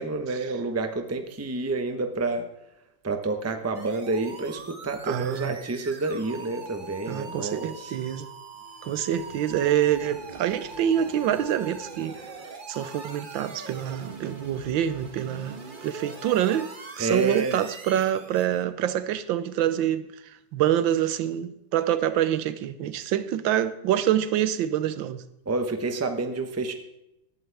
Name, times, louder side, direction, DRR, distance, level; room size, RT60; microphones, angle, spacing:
voice 1, 0.0-2.4 3.0-8.0 17.0-17.6 25.5-26.7, right 3 dB, 15° right, 0.6 m, -29 dB
sound 1, 3.7-18.6, right 3 dB, 30° right, 1.1 m, -42 dB
voice 2, 5.0-5.6 7.1-8.3 8.8-12.2 12.7-15.6 15.8-20.1 20.5-25.2, right 10 dB, 90° right, 1.5 m, -26 dB
18.5 x 12.0 x 3.5 m
omnidirectional pair, 2.0 m